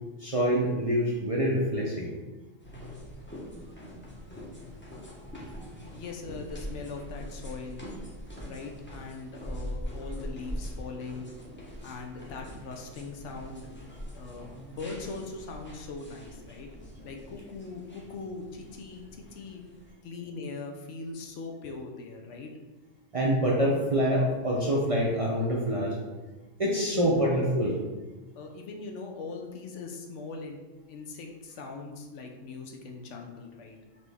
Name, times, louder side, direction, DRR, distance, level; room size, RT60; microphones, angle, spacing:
voice 1, 0.2-2.1 3.5-3.6 5.2-5.7 23.1-25.9 26.6-27.8, equal, 40° right, -4 dB, 0.5 m, -26 dB
sound 1, 2.6-19.9, equal, 10° left, 0.6 m, -43 dB
voice 2, 5.9-7.9 8.4-11.3 11.8-13.7 14.1-16.7 17.0-19.6 20.0-22.5 26.8-27.4 28.4-30.6 30.9-33.8, left 4 dB, 75° left, 2 dB, 0.9 m, -40 dB
4.2 x 3.1 x 3.4 m, 1.2 s
omnidirectional pair, 1.3 m